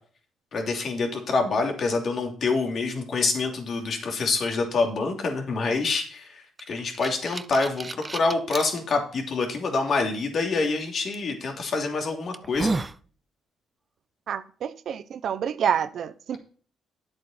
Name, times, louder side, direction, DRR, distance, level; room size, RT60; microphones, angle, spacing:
voice 1, 0.5-12.8, left 3 dB, 55° left, 2.8 m, -26 dB
sound 1, 6.6-8.6 9.3-9.4 11.1-11.3 11.9-12.0 12.3-13.0, right 3 dB, 25° right, 0.6 m, -31 dB
voice 2, 14.3-16.4, right 8 dB, 65° right, 0.7 m, -28 dB
11.0 x 7.8 x 4.3 m
cardioid pair, 90°, 0 cm